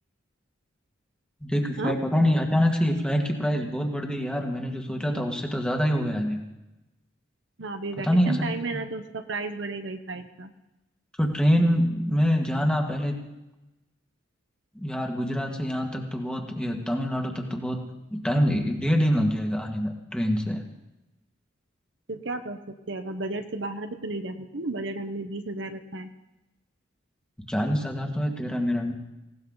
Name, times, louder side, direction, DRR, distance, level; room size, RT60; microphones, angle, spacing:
voice 1, 1.4-6.4 8.0-8.4 11.2-13.1 14.8-17.8 18.1-20.6 27.5-28.9, equal, 5° left, 2 dB, 1.8 m, -25 dB
voice 2, 7.6-10.5 22.1-26.1, right 2 dB, 65° right, 7 dB, 1.1 m, -33 dB
19.5 x 17.5 x 4.0 m, 0.99 s
head